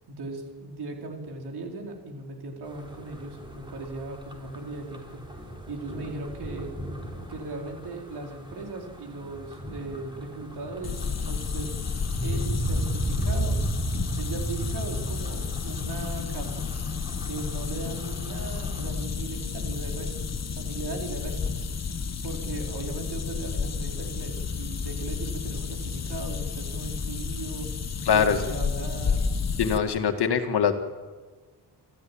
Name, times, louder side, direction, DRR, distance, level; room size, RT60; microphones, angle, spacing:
voice 1, 0.1-5.2 5.7-6.7 7.3-11.7 12.2-13.6 14.2-16.7 17.3-20.1 20.6-21.4 22.2-27.7 28.1-29.2, right 3 dB, 70° right, 1 dB, 4.7 m, -38 dB
sound 1, 2.6-18.9, right 1 dB, 10° right, 4.1 m, -35 dB
sound 2, 10.8-29.8, left 5 dB, 40° left, 1.4 m, -31 dB
voice 2, 28.1-28.4 29.6-30.7, left 7 dB, 75° left, 6 dB, 2.1 m, -22 dB
27.5 x 14.5 x 8.8 m, 1.4 s
wide cardioid pair, 165°, 40 cm